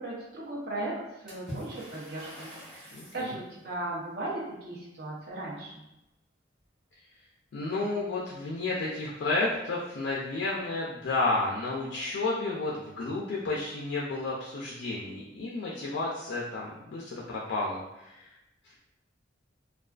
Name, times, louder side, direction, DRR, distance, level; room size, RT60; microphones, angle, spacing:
voice 1, 0.0-5.8, right 2 dB, 55° right, -6 dB, 0.7 m, -37 dB
Water / Splash splatter, 1.3-3.4, equal, 5° right, 0.8 m, -44 dB
voice 2, 2.9-3.3 7.5-18.3, left 2 dB, 70° left, -4 dB, 0.4 m, -31 dB
2.3 x 2.3 x 2.3 m, 0.91 s
head